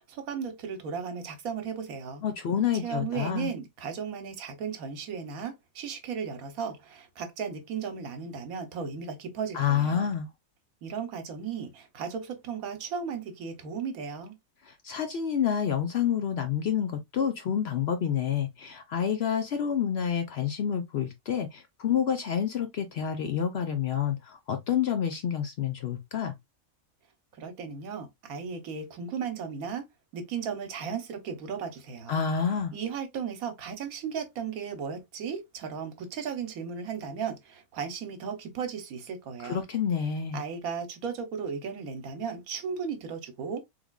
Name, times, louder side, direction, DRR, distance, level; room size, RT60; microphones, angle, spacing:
voice 1, 0.0-2.2 2.8-10.0 10.8-14.4 27.4-29.8 30.1-32.1 32.7-39.6 40.3-43.6, right 6 dB, 85° right, 1.3 m, -35 dB
voice 2, 2.2-3.5 9.5-10.3 14.6-26.4 32.1-32.7 39.4-40.4, left 8 dB, 60° left, 0.7 m, -28 dB
3.5 x 3.3 x 2.2 m
omnidirectional pair, 1.5 m